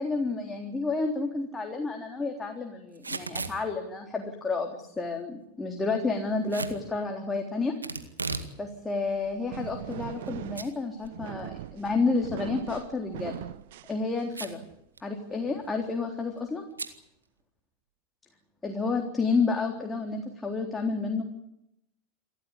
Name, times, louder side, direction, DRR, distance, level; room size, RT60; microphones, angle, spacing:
voice 1, 0.0-7.8 8.6-11.5 11.8-13.4 13.9-14.6 15.0-16.6 18.6-21.2, left 4 dB, 15° left, 2 dB, 3.7 m, -30 dB
Packing tape duct tape / Tearing, 2.9-3.6 6.5-6.8 7.8-8.5 8.9-9.0 9.7-10.3 10.6-10.7 11.1-11.2 13.1-13.4 14.3-14.7 15.0-15.1 15.3-15.7 16.8-17.0, right 3 dB, 90° right, 2.0 m, -35 dB
sound 1, 8.9-14.5, right 14 dB, 65° right, 0.9 m, -40 dB
28.5 x 14.0 x 10.0 m, 0.80 s
figure-of-eight pair, 85°, 0 cm